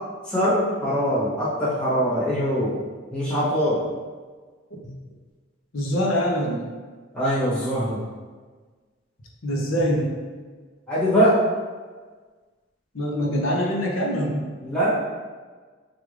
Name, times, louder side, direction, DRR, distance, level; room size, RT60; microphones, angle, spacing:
voice 1, 0.3-2.8 3.1-3.9 4.8-4.9 7.1-8.0 10.9-11.4 14.6-15.0, equal, 5° left, -10 dB, 0.9 m, -22 dB
voice 2, 5.7-6.7 9.4-10.1 12.9-14.4, equal, 85° left, -1 dB, 0.8 m, -24 dB
4.8 x 2.5 x 3.2 m, 1.4 s
head